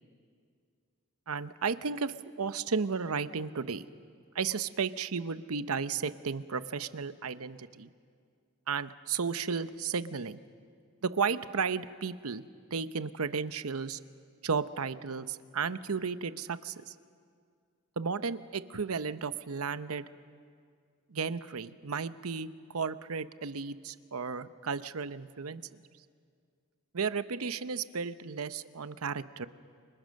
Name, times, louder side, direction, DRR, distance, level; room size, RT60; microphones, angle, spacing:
voice 1, 1.3-3.9 4.3-7.9 8.7-10.4 11.0-12.4 12.7-14.0 14.4-16.9 18.0-20.1 21.1-25.6 26.9-29.5, right 5 dB, 90° right, 13 dB, 0.8 m, -34 dB
30.0 x 25.0 x 6.5 m, 2.2 s
head